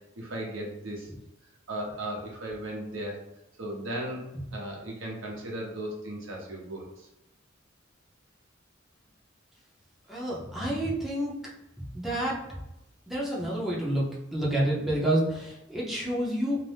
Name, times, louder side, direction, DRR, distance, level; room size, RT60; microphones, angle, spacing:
voice 1, 0.2-1.1 1.7-3.2 3.6-4.2 4.5-6.9, right 1 dB, 75° right, -1 dB, 0.8 m, -36 dB
voice 2, 10.1-11.5 11.9-12.4 13.1-16.6, right 1 dB, ahead, -6 dB, 0.6 m, -29 dB
2.6 x 2.1 x 3.2 m, 0.89 s
head